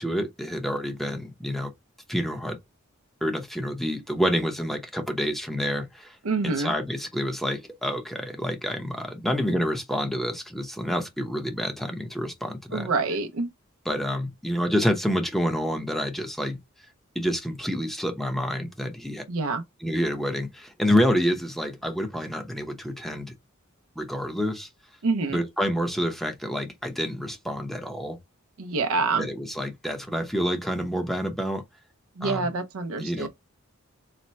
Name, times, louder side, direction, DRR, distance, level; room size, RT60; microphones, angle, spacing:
voice 1, 0.0-1.7 2.1-2.6 3.2-6.2 6.4-12.9 13.9-16.6 17.1-19.2 19.8-23.3 24.0-24.7 25.3-28.2 29.2-31.6 32.2-32.4 33.0-33.3, equal, ahead, 0.7 m, -28 dB
voice 2, 6.2-6.7 12.7-13.5 19.3-19.6 25.0-25.4 28.6-29.3 32.2-33.3, right 3 dB, 75° right, 0.5 m, -26 dB
4.1 x 2.1 x 3.1 m
head